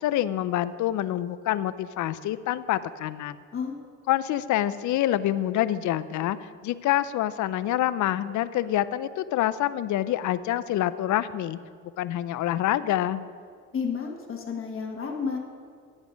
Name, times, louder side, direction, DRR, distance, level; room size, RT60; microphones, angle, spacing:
voice 1, 0.0-3.4 4.1-6.4 6.6-11.6 12.0-13.2, left 13 dB, 75° left, 15 dB, 0.5 m, -26 dB
voice 2, 13.7-15.4, left 6 dB, 45° left, 0 dB, 1.3 m, -31 dB
10.5 x 8.1 x 5.1 m, 2.1 s
cardioid pair, 90°, 30 cm